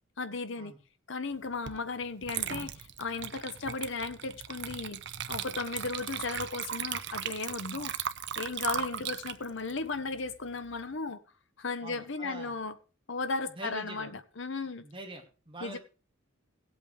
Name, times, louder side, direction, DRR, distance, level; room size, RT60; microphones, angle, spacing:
voice 1, 0.2-0.7 1.1-5.0 5.3-7.9 8.4-11.2 11.6-12.7 13.1-14.8 15.6-15.8, left 4 dB, 60° left, 0.9 m, -35 dB
Water / Liquid, 1.7-1.8 2.2-10.8, right 9 dB, 60° right, 0.7 m, -37 dB
voice 2, 11.8-12.6 13.5-14.1 14.8-15.8, right 1 dB, 25° right, 2.3 m, -44 dB
18.5 x 8.2 x 3.3 m
head